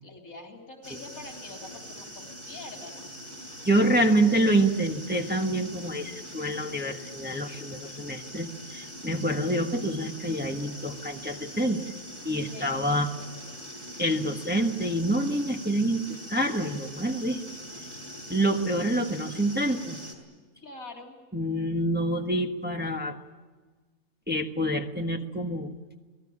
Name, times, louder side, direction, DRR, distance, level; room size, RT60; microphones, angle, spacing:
voice 1, 0.0-3.1 4.0-4.9 12.4-13.6 20.6-21.2, left 3 dB, 85° left, 2 dB, 4.0 m, -46 dB
sound 1, 0.8-20.1, equal, 55° right, 5.3 m, -43 dB
voice 2, 3.6-11.8 12.2-13.1 14.0-16.0 16.3-17.4 18.3-20.0 21.3-23.2 24.3-25.7, right 1 dB, 5° right, 3 dB, 1.3 m, -27 dB
27.5 x 18.5 x 8.8 m, 1.4 s
omnidirectional pair, 1.4 m